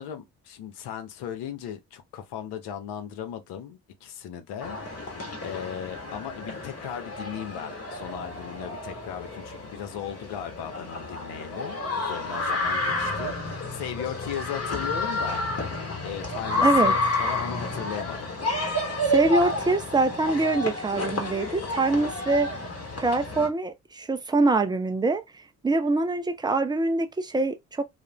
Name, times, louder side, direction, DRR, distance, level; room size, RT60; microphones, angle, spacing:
voice 1, 0.0-15.5 16.0-18.3, left 9 dB, 60° left, 0.7 m, -37 dB
sound 1, 4.6-23.5, left 2 dB, 30° left, 1.1 m, -30 dB
voice 2, 16.6-16.9 19.1-22.5 23.0-25.2 25.6-27.8, right 2 dB, 10° right, 0.4 m, -24 dB
2.4 x 2.1 x 2.9 m
hypercardioid pair, 45°, 45 cm